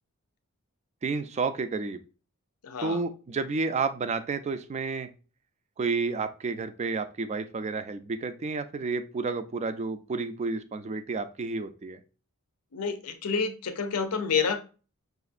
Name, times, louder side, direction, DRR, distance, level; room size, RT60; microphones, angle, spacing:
voice 1, 1.0-2.0 2.8-5.1 5.8-12.0, right 4 dB, 30° right, 10 dB, 0.3 m, -31 dB
voice 2, 2.6-3.0 12.7-14.6, left 5 dB, 90° left, 8 dB, 0.6 m, -28 dB
5.8 x 2.5 x 2.4 m, 0.35 s
head